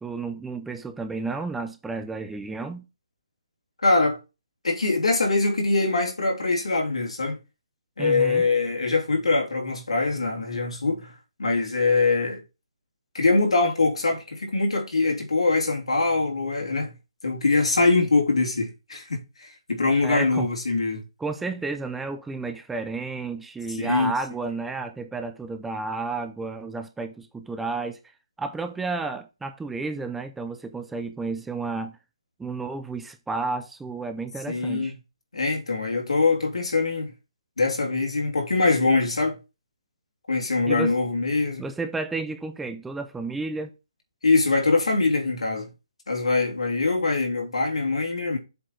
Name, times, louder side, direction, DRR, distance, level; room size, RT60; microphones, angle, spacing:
voice 1, 0.0-2.8 8.0-8.4 20.0-20.5 21.2-28.0 28.4-31.9 32.4-34.9 40.7-41.0 41.6-43.7, right 3 dB, 5° right, 0.3 m, -31 dB
voice 2, 3.8-4.2 4.6-7.4 8.0-11.1 11.4-12.4 13.1-16.9 17.2-21.0 23.8-24.1 34.5-35.0 35.3-37.1 37.6-39.4 40.3-41.6 44.2-45.7 46.1-48.4, left 3 dB, 90° left, 2.9 m, -23 dB
7.5 x 4.2 x 4.6 m
hypercardioid pair, 170°, 3 cm